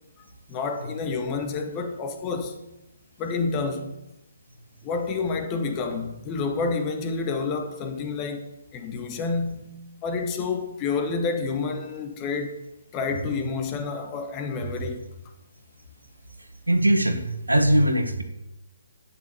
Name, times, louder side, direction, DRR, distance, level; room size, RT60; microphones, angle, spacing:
voice 1, 0.2-2.6 3.2-3.9 4.8-8.4 8.7-12.6 12.9-15.0, left 4 dB, 20° left, 1.6 m, -29 dB
voice 2, 16.7-18.2, right 1 dB, 80° right, 1.9 m, -21 dB
12.0 x 9.4 x 7.0 m
figure-of-eight pair, 135°, 0 cm